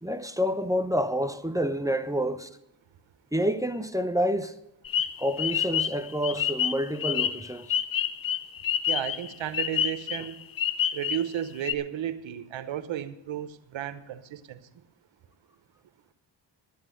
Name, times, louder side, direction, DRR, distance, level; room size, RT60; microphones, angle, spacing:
voice 1, 0.0-2.5 3.3-4.6 5.2-7.8, equal, 5° right, 0.8 m, -28 dB
sound 1, 4.9-11.4 11.7-11.8, left 9 dB, 50° left, 0.7 m, -28 dB
voice 2, 8.9-10.4 10.9-14.6, right 11 dB, 85° right, 1.0 m, -33 dB
10.5 x 8.9 x 7.8 m
cardioid pair, 65°, 45 cm